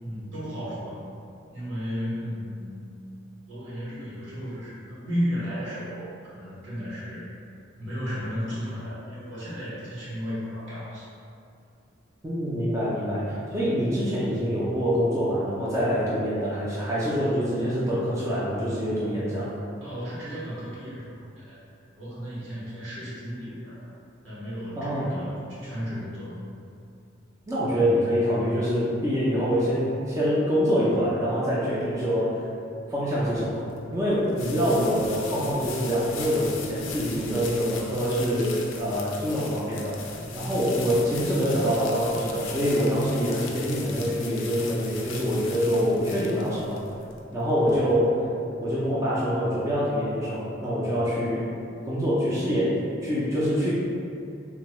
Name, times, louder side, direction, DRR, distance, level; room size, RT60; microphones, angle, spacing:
voice 1, 0.0-1.0 1.5-2.9 3.5-7.3 7.8-11.1 19.8-21.6 21.9-23.9 24.2-26.4, equal, 75° right, -9 dB, 1.1 m, -34 dB
voice 2, 12.2-19.5 24.8-25.2 27.5-32.4 32.9-33.7 33.9-46.8 47.3-48.2 48.6-51.5 51.8-53.7, equal, 15° right, -9 dB, 0.4 m, -25 dB
sound 1, 33.6-48.1, left 5 dB, 80° left, 0.4 m, -40 dB
3.4 x 2.2 x 3.0 m, 2.5 s
head